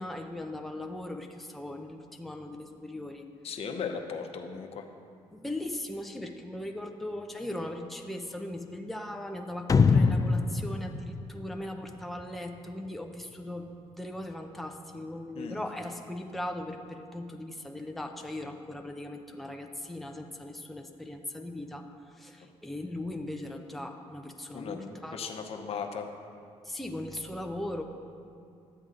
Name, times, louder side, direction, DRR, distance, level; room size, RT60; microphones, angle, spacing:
voice 1, 0.0-3.3 5.3-25.3 26.6-27.8, left 1 dB, ahead, 3 dB, 0.7 m, -39 dB
voice 2, 3.4-4.8 15.4-15.6 24.5-26.1, left 6 dB, 60° left, 4 dB, 0.9 m, -37 dB
sound 1, 9.7-12.2, left 4 dB, 30° left, 0.4 m, -24 dB
12.0 x 8.0 x 3.8 m, 2.4 s
cardioid pair, 80°, 12 cm